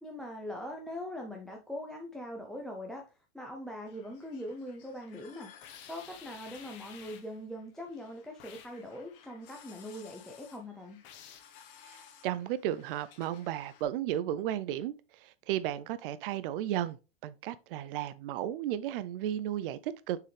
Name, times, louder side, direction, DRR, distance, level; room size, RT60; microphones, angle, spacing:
voice 1, 0.0-3.0 3.3-5.5 5.9-11.0, left 1 dB, ahead, 0.5 m, -42 dB
sound 1, 3.8-13.8, left 8 dB, 60° left, 1.5 m, -58 dB
sound 2, 5.6-7.4 8.4-8.8 11.0-11.6, left 9 dB, 35° left, 1.1 m, -51 dB
voice 2, 11.9-14.9 15.2-17.0 17.2-20.2, right 12 dB, 60° right, 0.5 m, -34 dB
6.7 x 4.7 x 3.3 m
supercardioid pair, 140°, 31 cm